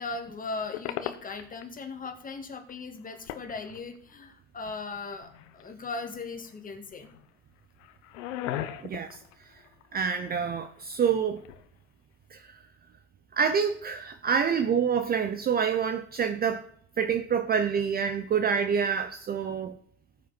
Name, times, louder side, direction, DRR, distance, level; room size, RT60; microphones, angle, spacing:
voice 1, 0.0-7.1, left 4 dB, 20° left, 1.9 m, -38 dB
sound 1, 0.7-1.8 2.0-2.1 2.7-2.8 3.0-4.1 4.7-5.7 6.0-6.5 6.9-7.3 7.6-10.5 10.8-11.7, left 12 dB, 65° left, 1.1 m, -39 dB
voice 2, 8.8-9.2 9.9-11.4 12.3-12.6 13.3-16.6 17.0-19.8, right 7 dB, 25° right, 0.7 m, -27 dB
14.5 x 7.6 x 4.2 m
hypercardioid pair, 95°, 38 cm